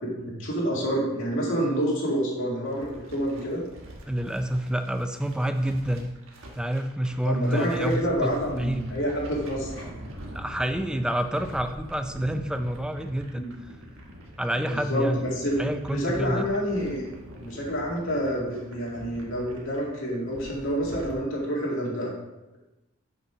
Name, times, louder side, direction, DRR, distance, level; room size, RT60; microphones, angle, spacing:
voice 1, 0.0-3.6 7.2-9.8 13.4-13.5 14.7-15.6 15.9-17.0 17.3-22.1, equal, 65° left, -5 dB, 2.2 m, -28 dB
sound 1, 2.7-21.2, equal, 70° right, 1.5 m, -44 dB
voice 2, 4.1-6.1 6.5-8.9 10.3-13.7 14.4-15.3 15.6-16.5, right 1 dB, 5° right, 8 dB, 0.4 m, -28 dB
6.5 x 5.8 x 5.9 m, 1.0 s
head